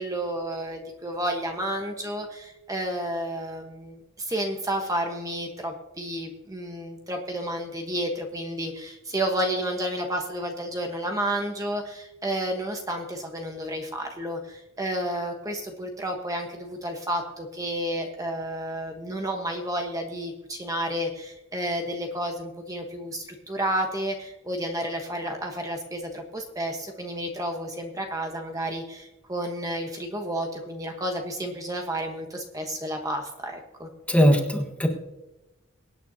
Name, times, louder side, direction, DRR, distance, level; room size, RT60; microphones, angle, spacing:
voice 1, 0.0-33.9, right 1 dB, 15° right, 3 dB, 1.2 m, -31 dB
voice 2, 34.1-34.9, equal, 5° left, 3 dB, 1.4 m, -20 dB
24.0 x 9.3 x 2.8 m, 1.0 s
head